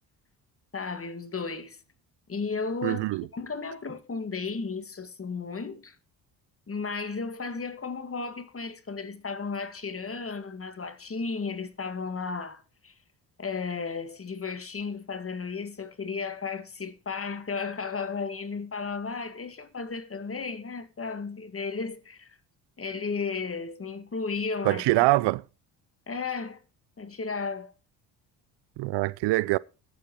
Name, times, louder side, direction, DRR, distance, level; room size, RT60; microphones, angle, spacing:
voice 1, 0.7-1.8 2.3-6.0 6.7-13.0 13.4-22.4 22.8-24.8 26.1-26.6 27.0-27.7, left 4 dB, 30° left, 2.0 m, -34 dB
voice 2, 2.8-3.2 24.7-25.4 28.8-29.6, right 20 dB, 60° right, 0.5 m, -24 dB
19.5 x 7.6 x 3.0 m
hypercardioid pair, 55°, 49 cm